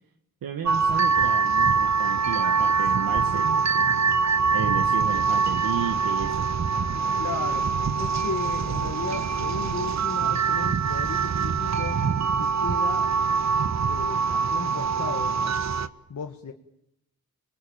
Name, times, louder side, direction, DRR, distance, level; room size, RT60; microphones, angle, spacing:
voice 1, 0.4-4.2 4.5-6.4, right 7 dB, 70° right, 6 dB, 1.8 m, -33 dB
sound 1, 0.6-15.9, right 5 dB, 50° right, 1.5 m, -24 dB
voice 2, 7.2-12.0 12.4-13.1 13.8-15.7 16.1-16.5, left 6 dB, 55° left, 4 dB, 2.0 m, -35 dB
27.0 x 20.5 x 8.9 m, 0.80 s
cardioid pair, 75°, 35 cm